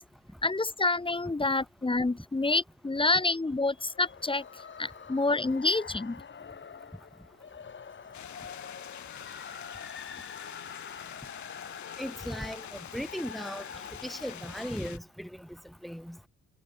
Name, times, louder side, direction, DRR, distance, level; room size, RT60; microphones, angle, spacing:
voice 1, 0.4-4.4 4.8-6.2, left 3 dB, 15° left, 2.5 m, -28 dB
sound 1, 3.7-14.7, left 6 dB, 40° left, 2.6 m, -46 dB
sound 2, 8.1-15.0, left 11 dB, 70° left, 2.7 m, -46 dB
voice 2, 12.0-13.7 14.0-15.5 15.8-16.2, equal, ahead, 4.7 m, -37 dB
cardioid pair, 90°, 30 cm